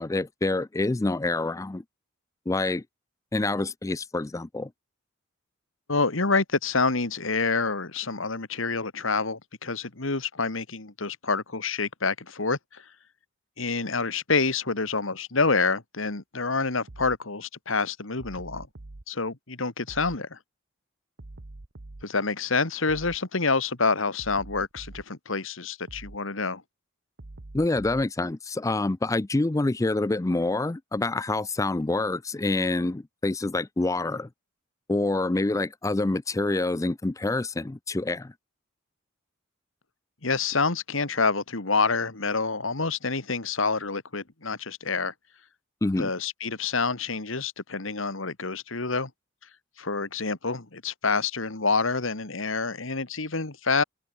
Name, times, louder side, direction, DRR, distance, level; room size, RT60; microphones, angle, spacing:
voice 1, 0.0-1.8 2.5-2.8 3.3-4.7 27.5-34.3 34.9-38.3 45.8-46.1, left 2 dB, 15° left, 0.4 m, -27 dB
voice 2, 5.9-12.8 13.6-18.7 19.1-20.4 22.0-26.6 40.2-45.1 46.0-49.1 49.8-53.8, left 4 dB, 70° left, 2.0 m, -27 dB
sound 1, 16.9-17.2 18.2-19.0 19.9-20.2 21.2-22.1 22.9-23.2 24.2-25.1 25.9-26.2 27.2-28.1, right 2 dB, 65° right, 1.2 m, -44 dB
head